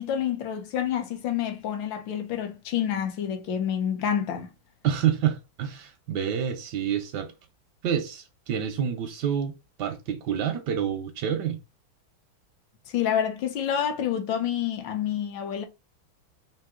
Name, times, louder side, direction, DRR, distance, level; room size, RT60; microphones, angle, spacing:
voice 1, 0.0-4.5 12.9-15.6, left 9 dB, 70° left, 1.4 m, -28 dB
voice 2, 4.8-7.3 7.8-11.6, right 9 dB, 75° right, 1.0 m, -28 dB
4.6 x 2.6 x 3.6 m
omnidirectional pair, 2.3 m